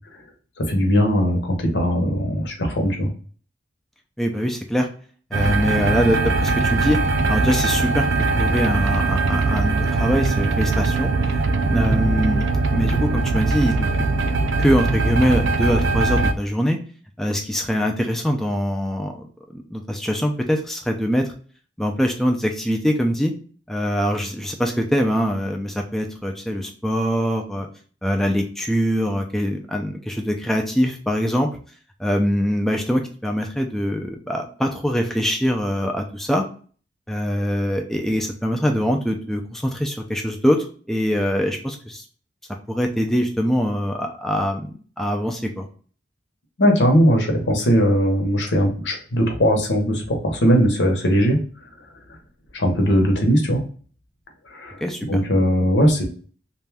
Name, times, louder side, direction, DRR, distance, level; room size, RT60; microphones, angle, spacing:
voice 1, 0.6-3.1 46.6-51.7 52.1-52.2 52.5-53.6 54.5-54.8 55.1-56.0, equal, 80° left, 2 dB, 0.8 m, -19 dB
voice 2, 4.2-4.9 5.3-7.0 7.3-8.1 8.4-11.1 11.6-13.9 14.6-16.8 17.2-19.3 19.5-21.3 21.8-23.3 23.7-27.7 28.0-31.5 32.0-36.4 37.1-42.0 42.7-44.7 45.0-45.7 54.8-55.2, equal, ahead, 2 dB, 0.3 m, -23 dB
sound 1, 5.3-16.3, right 3 dB, 85° right, 0.4 m, -21 dB
2.6 x 2.2 x 3.2 m, 0.42 s
head